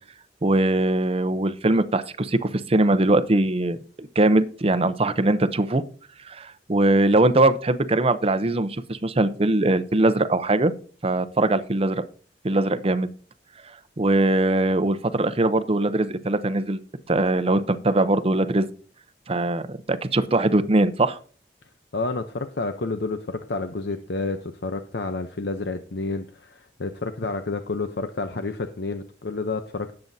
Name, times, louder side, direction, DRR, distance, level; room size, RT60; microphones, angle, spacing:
voice 1, 0.4-5.8 6.3-10.7 11.0-12.0 12.4-13.1 14.0-16.8 17.1-18.7 19.3-21.2, right 2 dB, 35° right, 12 dB, 0.7 m, -21 dB
voice 2, 21.9-29.9, left 3 dB, 65° left, 7 dB, 0.7 m, -30 dB
17.5 x 7.8 x 2.7 m, 0.42 s
head